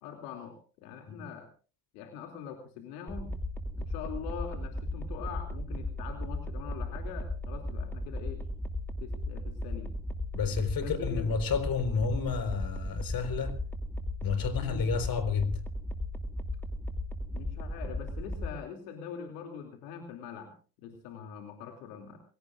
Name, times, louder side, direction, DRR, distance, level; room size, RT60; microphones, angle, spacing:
voice 1, 0.0-1.5 1.9-3.3 3.8-8.4 9.0-9.9 10.8-11.3 14.5-14.9 17.3-20.5 20.8-22.2, left 7 dB, 80° left, 2.9 m, -43 dB
sound 1, 3.1-18.6, left 1 dB, 5° left, 2.8 m, -36 dB
voice 2, 10.3-13.6 14.2-15.6, left 5 dB, 45° left, 4.4 m, -30 dB
28.0 x 17.5 x 2.5 m
hypercardioid pair, 80°, 47 cm